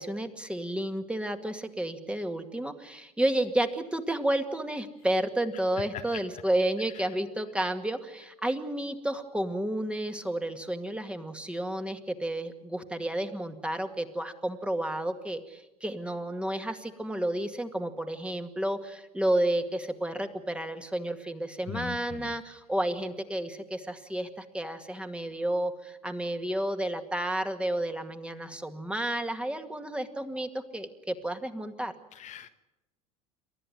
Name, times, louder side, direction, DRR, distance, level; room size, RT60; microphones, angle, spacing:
voice 1, 0.0-31.9, right 1 dB, 5° right, 7 dB, 2.2 m, -31 dB
voice 2, 21.7-22.3 32.1-32.5, left 10 dB, 40° left, 7 dB, 1.3 m, -40 dB
28.5 x 13.5 x 9.5 m, 0.96 s
figure-of-eight pair, 75°, 19 cm